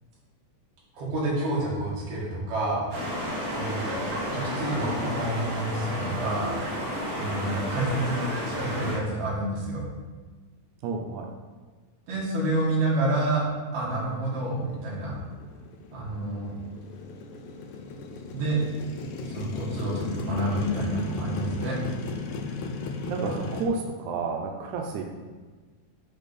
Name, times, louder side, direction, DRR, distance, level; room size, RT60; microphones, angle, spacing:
voice 1, 0.9-2.9 3.5-3.9 4.3-6.6 7.1-9.8 12.1-13.5 13.7-15.2 15.9-16.6 18.3-18.6 19.3-21.8, right 1 dB, 50° right, -5 dB, 2.2 m, -28 dB
sound 1, 2.9-9.0, equal, 70° right, 3.6 m, -31 dB
voice 2, 10.8-11.3 23.1-25.0, right 4 dB, 90° right, 2 dB, 1.7 m, -30 dB
Motorcycle, 14.3-23.7, left 3 dB, 80° left, 2.2 m, -36 dB
8.6 x 3.6 x 4.1 m, 1.4 s
omnidirectional pair, 4.2 m